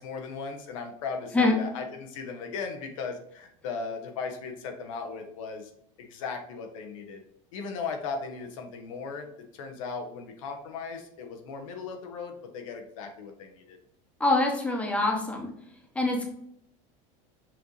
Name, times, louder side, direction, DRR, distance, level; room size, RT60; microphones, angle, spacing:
voice 1, 0.0-5.7 6.0-7.2 7.5-13.8, left 5 dB, 90° left, 4 dB, 0.9 m, -37 dB
voice 2, 14.2-15.5 15.9-16.3, left 2 dB, 10° left, 1 dB, 0.9 m, -24 dB
5.9 x 2.6 x 3.0 m, 0.70 s
supercardioid pair, 120°, 16 cm